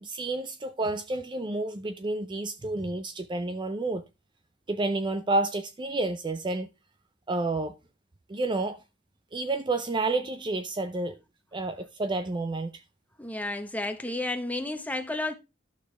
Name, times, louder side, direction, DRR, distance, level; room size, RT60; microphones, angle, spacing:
voice 1, 0.0-4.0 4.7-6.7 7.3-7.8 8.3-8.8 9.3-11.2 11.5-12.7, right 2 dB, 25° right, 0.5 m, -30 dB
voice 2, 13.2-15.3, left 2 dB, 10° left, 1.1 m, -32 dB
12.0 x 6.5 x 3.3 m
head